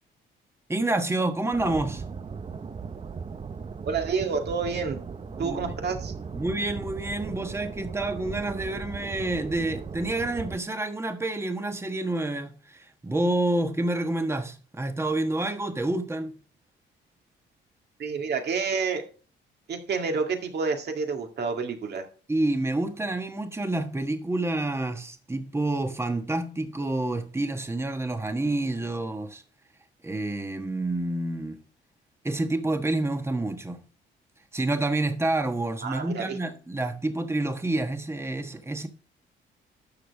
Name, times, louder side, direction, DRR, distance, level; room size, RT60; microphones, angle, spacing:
voice 1, 0.7-2.0 5.4-5.7 6.3-16.3 22.3-29.4 30.0-31.6 32.2-33.8 34.5-38.9, right 2 dB, 15° right, 1.3 m, -28 dB
sound 1, 1.5-10.6, right 5 dB, 30° right, 0.7 m, -37 dB
voice 2, 3.9-5.0 5.4-6.1 18.0-19.0 19.7-22.1 35.8-36.4, right 5 dB, 55° right, 2.0 m, -29 dB
12.0 x 6.7 x 3.5 m
cardioid pair, 90°, 20 cm